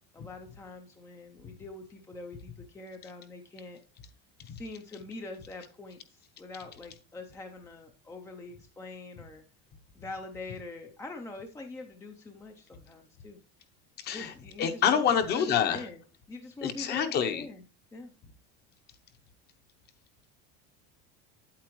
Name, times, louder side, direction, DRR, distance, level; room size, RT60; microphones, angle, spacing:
voice 1, 0.1-3.8 4.4-9.4 10.0-13.4 14.1-16.0 16.3-17.6 17.9-18.1, left 2 dB, 10° left, 4 dB, 0.4 m, -44 dB
voice 2, 14.0-15.8 16.6-17.5, left 8 dB, 30° left, 9 dB, 0.8 m, -27 dB
8.5 x 8.4 x 3.0 m, 0.34 s
cardioid pair, 170°, 31 cm